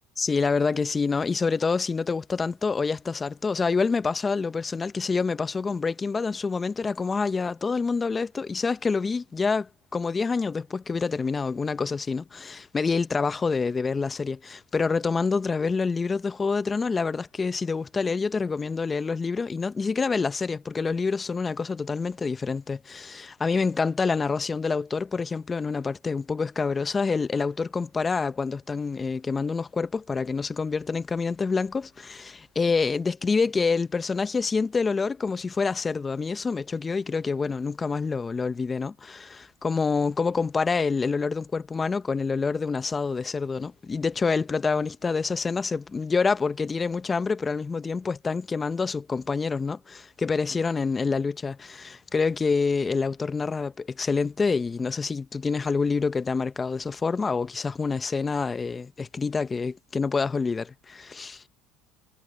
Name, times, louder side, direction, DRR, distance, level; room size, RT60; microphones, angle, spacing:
voice 1, 0.2-61.4, left 4 dB, 25° left, 1.1 m, -27 dB
hypercardioid pair, 80°, 0 cm